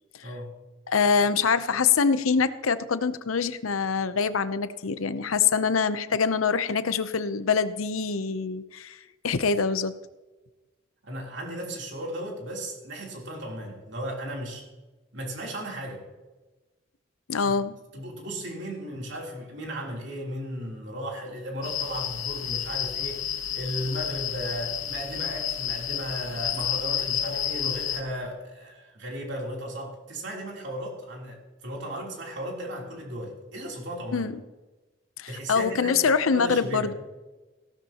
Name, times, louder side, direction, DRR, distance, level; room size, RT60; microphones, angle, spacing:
voice 1, 0.2-0.6 11.0-14.6 15.1-16.0 17.4-17.5 17.9-34.3 35.3-36.9, equal, 60° right, -1 dB, 3.3 m, -35 dB
voice 2, 0.9-9.9 17.3-17.8 34.1-34.3 35.2-36.9, left 5 dB, 90° left, 13 dB, 0.7 m, -25 dB
sound 1, 21.6-28.0, left 10 dB, 70° left, 1.1 m, -31 dB
16.5 x 12.5 x 3.0 m, 1.2 s
head